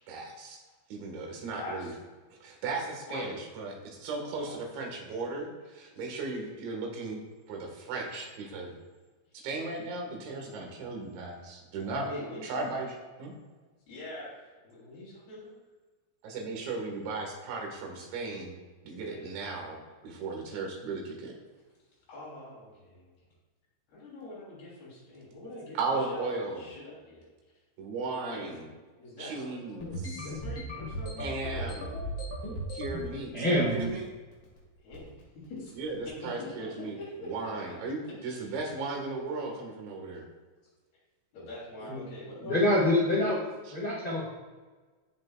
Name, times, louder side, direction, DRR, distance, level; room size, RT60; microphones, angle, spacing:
voice 1, 0.1-0.6 0.9-1.9 2.4-7.2 7.5-8.7 9.4-12.1 12.4-13.3 16.2-18.6 18.8-21.3 25.8-26.7 27.8-28.7 29.2-30.2 31.2-31.9 32.7-34.1 35.8-36.0 36.2-37.0 37.2-40.3, right 3 dB, 80° right, 0 dB, 4.1 m, -36 dB
voice 2, 1.4-1.9 3.1-3.4 4.4-4.5 9.4-9.5 12.0-12.4 13.9-15.6 19.1-19.3 21.5-21.6 22.1-23.1 23.9-27.3 28.3-28.6 29.0-31.9 32.4-32.5 34.8-37.5 38.2-38.5 41.3-43.2, left 1 dB, 60° left, -8 dB, 5.1 m, -44 dB
sound 1, 29.8-33.1 33.5-34.0 34.3-34.6 34.9-35.2 35.8-36.1, equal, 40° left, 1.9 m, -37 dB
voice 3, 33.3-33.9 41.9-42.0 42.4-43.4 43.7-44.2, left 1 dB, 85° left, -6 dB, 0.9 m, -26 dB
18.0 x 6.3 x 2.4 m, 1.3 s
omnidirectional pair, 5.1 m